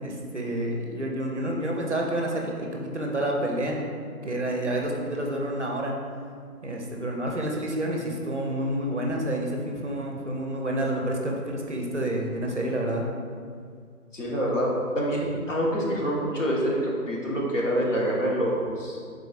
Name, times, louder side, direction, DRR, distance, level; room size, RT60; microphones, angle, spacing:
voice 1, 0.0-3.8 4.2-5.9 6.6-13.1, right 1 dB, 50° right, 0 dB, 0.5 m, -29 dB
voice 2, 14.1-19.0, equal, 55° left, -4 dB, 1.0 m, -26 dB
4.5 x 3.9 x 2.4 m, 2.1 s
figure-of-eight pair, 155°, 45 cm